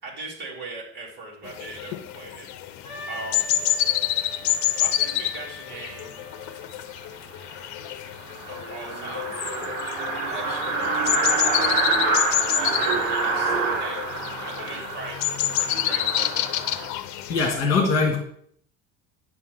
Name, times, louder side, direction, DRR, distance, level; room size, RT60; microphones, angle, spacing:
voice 1, 0.0-3.6 4.7-6.3 8.5-9.8 10.1-11.0 11.7-14.0 14.4-16.8, right 3 dB, 35° right, -4 dB, 3.2 m, -40 dB
sound 1, 1.4-17.5, left 12 dB, 75° left, 0.8 m, -28 dB
Wind instrument woodwind instrument, 2.8-6.7, left 3 dB, 25° left, 2.1 m, -42 dB
sound 2, 7.0-7.1 7.4-7.5 7.8-7.9 8.2-16.9, right 4 dB, 60° right, 3.3 m, -27 dB
voice 2, 17.3-18.2, left 4 dB, 50° left, 1 dB, 2.1 m, -21 dB
9.7 x 7.4 x 3.8 m, 0.63 s
cardioid pair, 160°, 29 cm